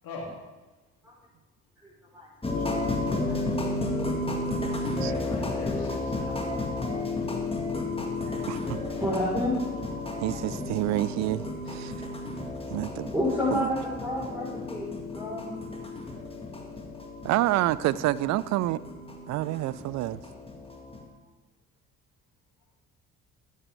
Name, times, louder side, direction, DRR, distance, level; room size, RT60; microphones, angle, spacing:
voice 1, 1.8-2.3 3.2-3.4 6.9-7.0 8.9-10.1 13.1-15.5, left 1 dB, 5° right, -8 dB, 4.1 m, -30 dB
sound 1, 2.4-21.0, left 2 dB, 15° left, 1.9 m, -33 dB
voice 2, 4.8-6.3, left 3 dB, 55° left, -1 dB, 3.0 m, -40 dB
voice 3, 8.5-8.8 10.2-12.1 12.7-13.1 13.5-13.7 17.2-18.8 19.3-20.2, right 16 dB, 45° right, 19 dB, 0.4 m, -28 dB
15.0 x 9.1 x 3.4 m, 1.2 s
figure-of-eight pair, 45°, 41 cm